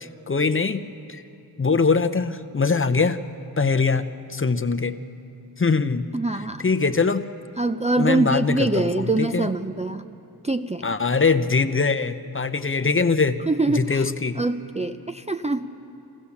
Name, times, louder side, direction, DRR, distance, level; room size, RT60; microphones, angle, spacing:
voice 1, 0.0-0.8 1.1-1.2 1.6-3.2 3.6-4.9 5.6-6.1 6.6-7.3 8.0-9.5 10.8-13.4 13.7-14.4, left 4 dB, 30° left, 8 dB, 0.6 m, -22 dB
voice 2, 6.1-6.7 7.6-10.1 10.4-10.8 13.5-14.1 14.4-15.8, right 2 dB, 20° right, 6 dB, 0.4 m, -24 dB
25.5 x 15.5 x 7.1 m, 3.0 s
wide cardioid pair, 100°, 40 cm